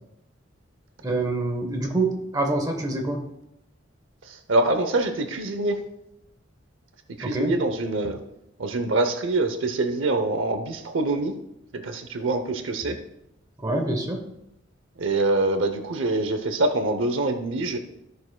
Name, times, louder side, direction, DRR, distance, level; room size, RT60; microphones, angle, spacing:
voice 1, 1.0-3.2 7.2-7.5 13.6-14.2, right 2 dB, 20° right, 3 dB, 1.0 m, -26 dB
voice 2, 4.3-5.8 7.2-8.2 8.6-11.4 11.7-13.0 15.0-17.8, right 2 dB, 75° right, 7 dB, 0.7 m, -25 dB
14.5 x 6.5 x 2.3 m, 0.83 s
head